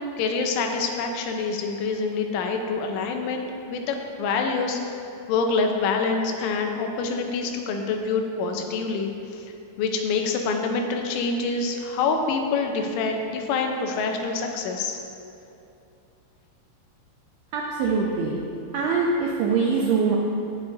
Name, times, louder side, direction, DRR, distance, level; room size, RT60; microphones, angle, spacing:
voice 1, 0.2-4.8 5.3-9.5 9.8-15.0, left 4 dB, 85° left, 3 dB, 3.3 m, -26 dB
voice 2, 17.5-18.4 18.7-20.2, right 4 dB, 85° right, -3 dB, 2.3 m, -23 dB
18.0 x 6.4 x 2.7 m, 2.7 s
omnidirectional pair, 5.4 m